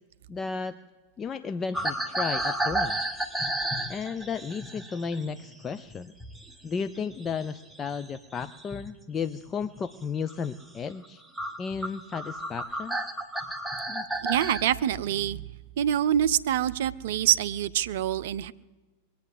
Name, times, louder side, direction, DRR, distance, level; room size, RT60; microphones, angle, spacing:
voice 1, 0.3-0.8 1.2-3.0 3.9-6.1 6.6-11.2 11.6-13.0 13.9-14.1, left 5 dB, 20° left, 11 dB, 0.5 m, -33 dB
sound 1, 1.7-6.5 6.8-8.9 9.5-9.8 10.3-10.5 11.0-11.1 11.4-14.6, right 1 dB, 5° right, 1.1 m, -32 dB
voice 2, 14.2-15.4 15.8-18.5, right 11 dB, 55° right, 14 dB, 0.5 m, -25 dB
21.5 x 8.6 x 7.7 m, 1.2 s
figure-of-eight pair, 90°, 0 cm